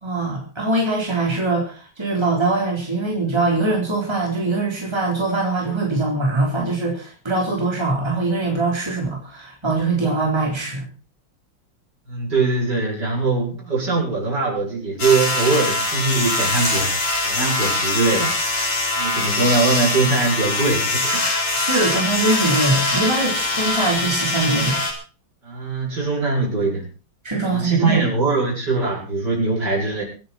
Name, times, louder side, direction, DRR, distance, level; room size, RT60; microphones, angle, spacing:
voice 1, 0.0-10.8 21.6-24.8 27.2-28.0, right 2 dB, 10° right, -1 dB, 4.0 m, -22 dB
voice 2, 12.1-17.0 17.2-21.2 25.4-26.9 27.4-30.0, right 3 dB, 50° right, -3 dB, 7.9 m, -22 dB
sound 1, 15.0-24.9, left 2 dB, 90° left, 5.2 m, -22 dB
24.5 x 10.5 x 4.3 m, 0.37 s
omnidirectional pair, 2.3 m